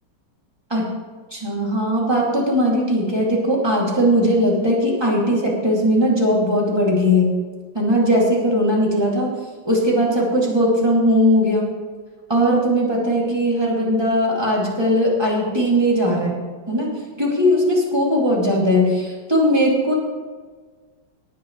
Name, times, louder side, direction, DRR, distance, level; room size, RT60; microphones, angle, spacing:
voice 1, 1.3-7.3 7.7-9.3 9.6-11.7 12.3-16.4 16.7-19.9, equal, 15° right, -4 dB, 2.7 m, -19 dB
18.5 x 9.5 x 3.3 m, 1.5 s
omnidirectional pair, 2.0 m